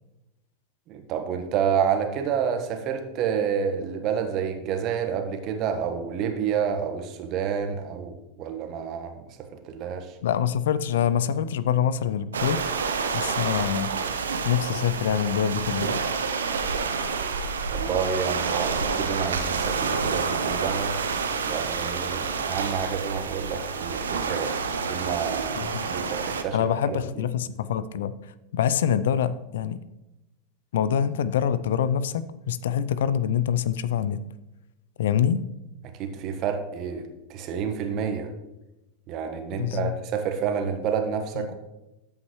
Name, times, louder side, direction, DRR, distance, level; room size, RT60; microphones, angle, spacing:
voice 1, 0.9-9.3 9.6-10.2 17.7-21.0 21.4-24.5 24.9-27.0 35.9-38.3 39.1-41.6, right 7 dB, 45° right, 5 dB, 1.3 m, -29 dB
voice 2, 10.2-12.6 13.1-13.9 14.4-16.0 25.6-25.9 26.5-28.2 28.5-29.8 30.7-34.2 35.0-35.5 39.6-39.9 41.4-41.6, left 9 dB, 70° left, 16 dB, 0.4 m, -25 dB
sound 1, 12.3-26.4, right 5 dB, 80° right, 0.7 m, -28 dB
13.5 x 5.6 x 3.1 m, 0.96 s
hypercardioid pair, 90°, 0 cm